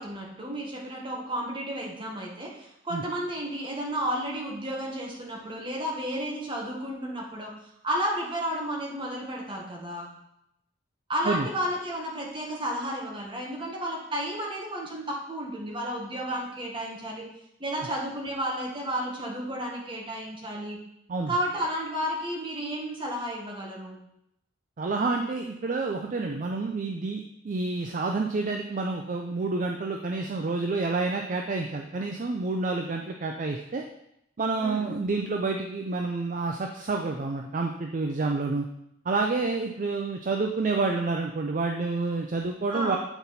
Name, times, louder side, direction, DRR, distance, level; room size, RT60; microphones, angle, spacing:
voice 1, 0.0-7.5 7.8-10.1 11.1-17.3 17.6-20.8 21.3-24.0 34.6-34.9 42.7-43.0, equal, 25° right, -2 dB, 1.3 m, -32 dB
voice 2, 24.8-33.8 34.4-38.7 39.1-43.0, right 3 dB, 45° right, 3 dB, 0.4 m, -29 dB
8.0 x 4.2 x 4.0 m, 0.80 s
head